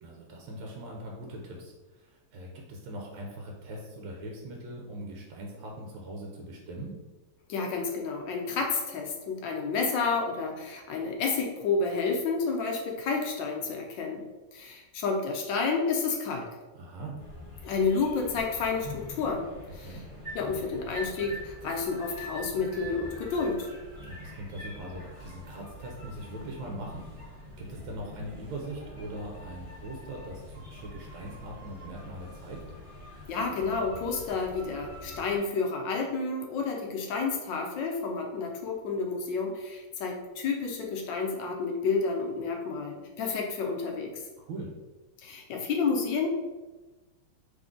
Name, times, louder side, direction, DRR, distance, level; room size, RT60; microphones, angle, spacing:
voice 1, 0.0-7.0 16.7-17.2 19.8-20.0 24.0-32.6 44.4-44.7, right 1 dB, 70° right, 0 dB, 1.3 m, -41 dB
voice 2, 7.5-14.2 14.5-16.5 17.6-19.4 19.7-20.0 20.3-23.7 33.3-44.1 45.2-46.3, left 4 dB, 75° left, 1 dB, 1.1 m, -30 dB
sound 1, 17.2-35.4, left 1 dB, 35° right, 1.3 m, -44 dB
3.7 x 3.3 x 3.7 m, 1.2 s
omnidirectional pair, 2.4 m